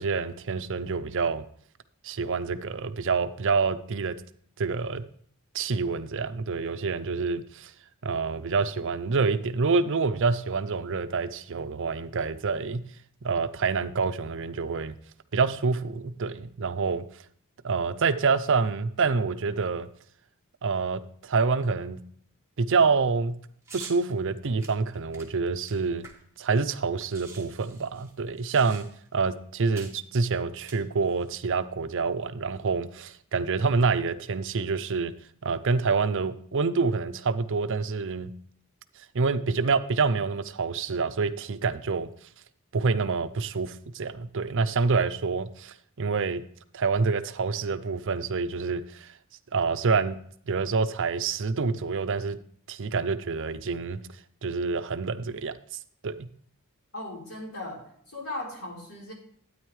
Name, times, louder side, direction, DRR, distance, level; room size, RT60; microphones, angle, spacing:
voice 1, 0.0-1.4 2.0-4.2 4.6-5.0 5.5-7.7 8.0-12.8 13.2-14.9 15.3-17.0 17.6-19.9 20.6-22.0 22.6-23.3 23.7-26.1 26.4-28.9 29.1-35.1 35.4-38.3 39.1-42.1 42.7-46.4 46.7-49.1 49.5-50.2 50.5-52.4 52.7-54.0 54.4-55.6 56.0-56.3, right 4 dB, 60° right, 12 dB, 0.6 m, -27 dB
sound 1, 23.7-24.0 24.6-26.4 26.7-26.8 27.0-29.1 29.8-30.0 30.5-31.3, right 5 dB, 15° right, 1.6 m, -46 dB
voice 2, 56.9-59.1, left 2 dB, 70° left, -2 dB, 4.0 m, -38 dB
12.5 x 9.3 x 3.1 m, 0.63 s
head